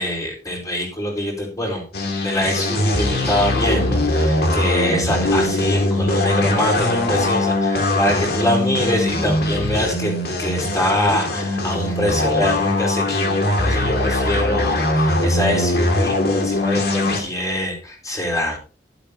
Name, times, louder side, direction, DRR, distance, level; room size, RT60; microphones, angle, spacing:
voice 1, 0.0-1.9 2.2-18.6, left 1 dB, 20° left, -1 dB, 4.0 m, -24 dB
sound 1, 1.9-17.2, left 1 dB, 60° left, 2.4 m, -21 dB
12.0 x 12.0 x 2.8 m, 0.37 s
head